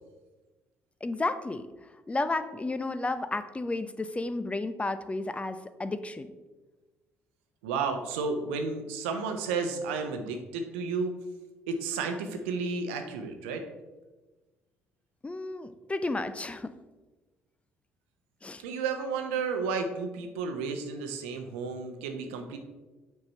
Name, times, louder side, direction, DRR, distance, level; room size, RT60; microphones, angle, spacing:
voice 1, 1.0-1.7 2.1-6.3 15.2-16.7 18.4-18.6, left 2 dB, 20° left, 12 dB, 0.5 m, -32 dB
voice 2, 7.6-11.2 11.7-13.6 18.6-22.6, right 4 dB, 70° right, 6 dB, 0.8 m, -32 dB
7.9 x 5.7 x 4.2 m, 1.2 s
figure-of-eight pair, 50°, 7 cm